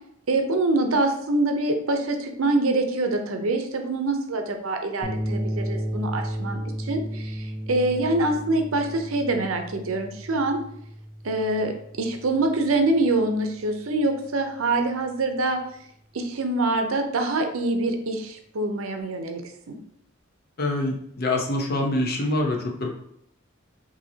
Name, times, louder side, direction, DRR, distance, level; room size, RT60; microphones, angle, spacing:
voice 1, 0.3-10.6 11.2-15.6 16.1-19.4 19.7-19.8, right 2 dB, 85° right, 5 dB, 0.6 m, -25 dB
sound 1, 5.0-13.5, equal, 20° left, 1.0 m, -34 dB
voice 2, 20.6-22.9, left 2 dB, 50° left, 1 dB, 0.8 m, -25 dB
5.6 x 2.8 x 2.7 m, 0.71 s
head